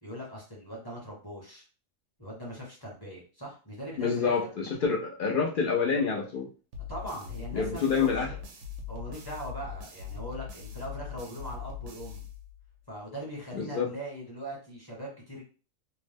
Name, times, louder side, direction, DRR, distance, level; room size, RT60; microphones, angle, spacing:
voice 1, 0.0-1.6 2.2-4.5 6.9-8.4 8.9-12.2 12.9-15.4, equal, 20° left, -4 dB, 0.8 m, -40 dB
voice 2, 4.0-6.5 7.5-8.3 13.5-13.9, left 5 dB, 65° left, -1 dB, 0.5 m, -27 dB
sound 1, 6.7-12.8, left 7 dB, 90° right, 1.1 m, -41 dB
2.7 x 2.0 x 3.4 m, 0.36 s
omnidirectional pair, 1.4 m